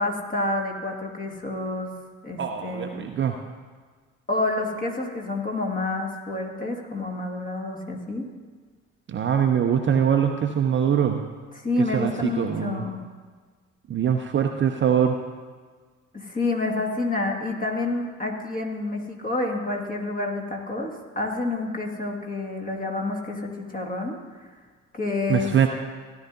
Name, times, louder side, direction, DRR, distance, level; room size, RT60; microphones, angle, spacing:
voice 1, 0.0-1.9 2.2-3.0 4.3-8.3 11.5-13.0 16.1-24.1 24.9-25.6, left 2 dB, 20° left, 1 dB, 2.0 m, -28 dB
voice 2, 2.4-3.3 9.1-11.2 11.9-12.8 13.9-15.1 25.3-25.7, right 8 dB, 30° right, 5 dB, 0.7 m, -23 dB
16.0 x 11.0 x 2.7 m, 1.5 s
figure-of-eight pair, 50°, 40 cm